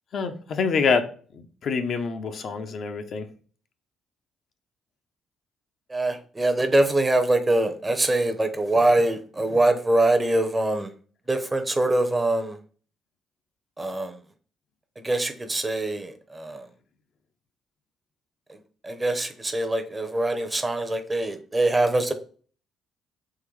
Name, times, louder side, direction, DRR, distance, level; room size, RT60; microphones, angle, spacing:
voice 1, 0.1-3.3, left 5 dB, 60° left, 0.5 m, -26 dB
voice 2, 5.9-10.9 11.3-12.6 13.8-14.1 15.0-16.6 18.8-22.1, right 2 dB, 20° right, 0.6 m, -23 dB
3.8 x 3.0 x 3.1 m
cardioid pair, 90°, 0 cm